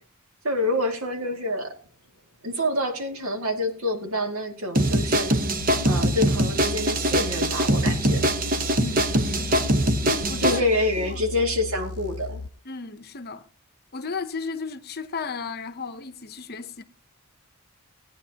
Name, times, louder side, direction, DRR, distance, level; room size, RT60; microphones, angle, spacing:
voice 1, 0.4-1.7 2.4-5.3 5.9-8.3 10.4-12.4, left 1 dB, 70° right, 2.2 m, -27 dB
sound 1, 4.7-10.6, right 1 dB, 40° right, 0.9 m, -23 dB
sound 2, 5.6-12.5, left 3 dB, 80° left, 0.5 m, -35 dB
voice 2, 8.8-9.7 10.0-10.6 11.0-11.2 12.6-13.5 13.9-16.8, left 4 dB, 45° left, 0.8 m, -34 dB
18.0 x 9.2 x 2.8 m
head